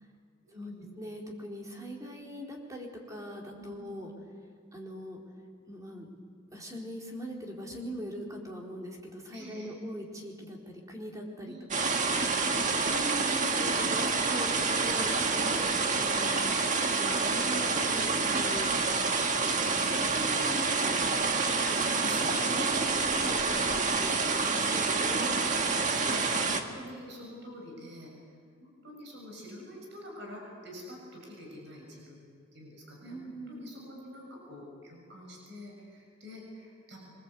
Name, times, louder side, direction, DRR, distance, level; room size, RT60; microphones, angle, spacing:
voice 1, 0.4-0.9 3.5-3.8 9.3-9.7 11.4-11.6 12.8-13.1 21.2-21.4 21.7-22.4 22.7-22.8 25.3-25.5 25.9-28.1 28.6-37.2, left 1 dB, 60° right, 0 dB, 7.3 m, -46 dB
voice 2, 1.0-4.1 4.7-5.2 5.7-6.1 6.5-12.1 12.6-16.5 16.9-18.7 19.4-21.0 21.5-22.0 22.5-25.4 33.0-33.7, equal, 15° right, -1 dB, 4.0 m, -41 dB
sound 1, 11.7-26.6, right 4 dB, 40° right, 1.7 m, -28 dB
26.5 x 24.0 x 8.4 m, 2.1 s
head